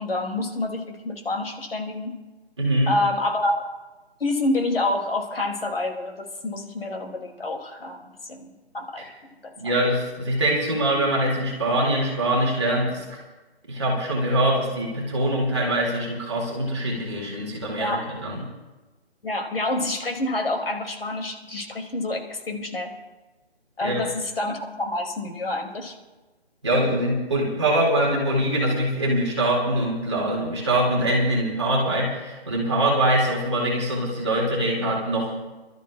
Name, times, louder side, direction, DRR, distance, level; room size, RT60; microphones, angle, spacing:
voice 1, 0.0-2.1 2.9-3.6 4.2-9.0 9.4-9.5 17.8-18.0 19.2-22.9 23.8-25.9, left 2 dB, 60° left, 2 dB, 2.7 m, -28 dB
voice 2, 2.6-2.9 9.0-9.1 9.6-13.2 13.7-18.4 23.8-24.0 26.6-35.4, right 1 dB, 25° right, -3 dB, 2.3 m, -23 dB
29.0 x 12.5 x 2.4 m, 1.1 s
hypercardioid pair, 175°, 32 cm